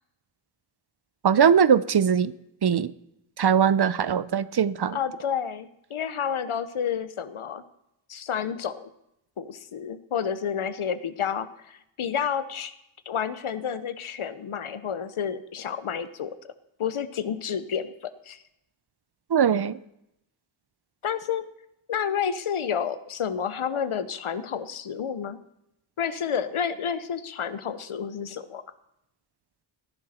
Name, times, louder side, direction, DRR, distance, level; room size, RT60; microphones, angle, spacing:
voice 1, 1.2-2.3 2.6-2.9 3.4-5.0 19.3-19.8, right 7 dB, 50° right, 16 dB, 0.7 m, -21 dB
voice 2, 4.9-7.6 8.1-8.9 9.4-12.7 13.1-16.3 16.8-18.4 21.0-21.4 21.9-25.4 26.0-28.6, left 7 dB, 75° left, 12 dB, 1.0 m, -30 dB
17.5 x 10.5 x 4.4 m, 0.83 s
cardioid pair, 50°, 50 cm